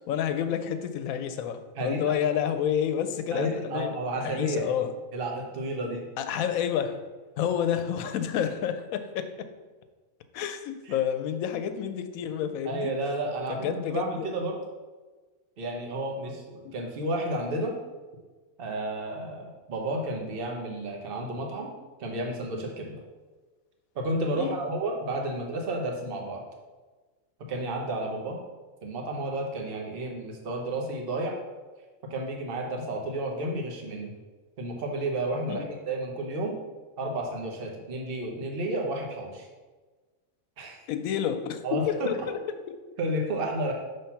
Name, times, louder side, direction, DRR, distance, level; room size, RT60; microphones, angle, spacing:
voice 1, 0.1-4.9 6.2-7.0 7.4-9.5 10.3-12.9 13.6-14.3 16.6-16.8 24.3-24.6 35.5-35.7 40.9-42.4 42.7-42.8, left 9 dB, 80° left, 9 dB, 1.0 m, -29 dB
voice 2, 1.8-2.1 3.3-4.7 5.1-6.1 12.6-14.6 15.6-17.8 18.6-21.7 22.0-23.0 23.9-26.4 27.5-28.4 28.8-31.4 32.1-34.1 34.6-36.6 37.0-39.5 40.6-40.8 41.6-42.3 43.0-43.7, right 1 dB, 45° right, 1 dB, 1.0 m, -31 dB
5.8 x 3.2 x 5.7 m, 1.3 s
omnidirectional pair, 1.5 m